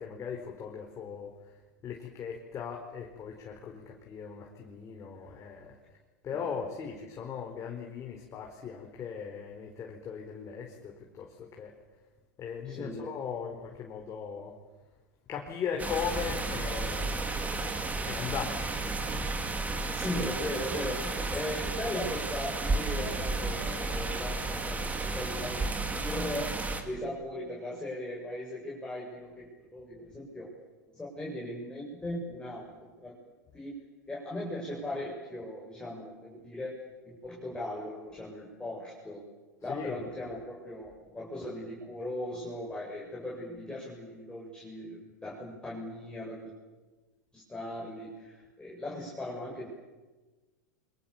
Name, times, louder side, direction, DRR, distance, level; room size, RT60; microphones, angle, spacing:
voice 1, 0.0-5.8 6.2-11.7 12.4-14.6 15.3-17.4 18.0-19.2 39.7-40.0, left 7 dB, 30° left, 1 dB, 4.7 m, -38 dB
voice 2, 12.6-13.0 19.9-25.6 26.0-30.5 30.9-32.6 33.0-33.1 33.5-33.7 34.1-36.7 37.0-39.3 39.6-46.5 47.3-49.7, left 1 dB, 10° left, -4 dB, 7.8 m, -38 dB
sound 1, 15.8-26.8, right 3 dB, 15° right, 3.6 m, -33 dB
29.0 x 25.5 x 7.4 m, 1.2 s
hypercardioid pair, 110°, 9 cm